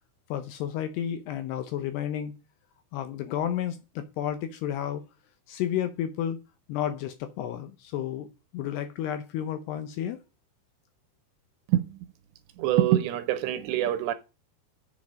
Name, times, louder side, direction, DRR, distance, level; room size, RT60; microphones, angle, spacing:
voice 1, 0.3-2.3 2.9-5.0 5.5-6.4 6.7-8.3 8.5-10.2, left 10 dB, 80° left, 2.5 m, -31 dB
voice 2, 12.6-14.1, right 13 dB, 80° right, 2.7 m, -24 dB
7.6 x 7.4 x 6.2 m
omnidirectional pair, 5.4 m